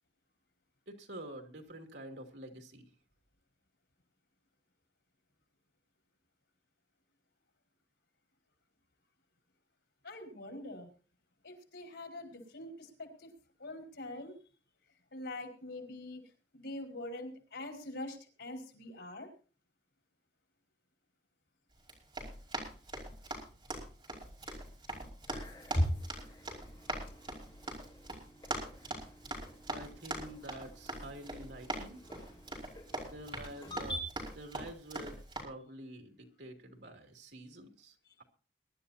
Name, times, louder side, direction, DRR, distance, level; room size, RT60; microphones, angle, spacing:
voice 1, 0.9-2.9 29.7-32.0 33.0-34.0 34.3-38.2, right 1 dB, 75° right, 4 dB, 2.8 m, -48 dB
voice 2, 10.0-10.9 11.4-13.3 13.6-14.3 15.1-16.2 16.5-19.3 38.1-38.2, left 1 dB, 85° left, 3 dB, 4.8 m, -44 dB
Run, 21.8-35.4, right 2 dB, 30° right, 5.3 m, -43 dB
sound 1, 25.3-34.0, equal, 30° left, 4.2 m, -41 dB
23.0 x 12.5 x 2.8 m, 0.38 s
head